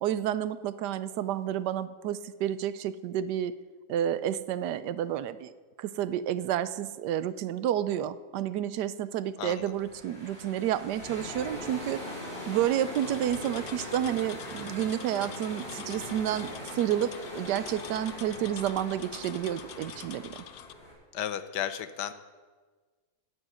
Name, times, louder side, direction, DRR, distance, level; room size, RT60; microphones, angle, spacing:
voice 1, 0.0-3.6 3.9-5.5 5.8-12.0 12.5-20.4, right 11 dB, 85° right, 14 dB, 1.2 m, -30 dB
voice 2, 9.4-9.7 21.1-22.1, left 10 dB, 90° left, 11 dB, 1.4 m, -33 dB
sound 1, 9.6-20.9, left 1 dB, 40° left, 4.8 m, -41 dB
sound 2, 12.9-20.7, left 11 dB, 70° left, 0.7 m, -47 dB
13.0 x 7.3 x 9.1 m, 1.5 s
omnidirectional pair, 1.7 m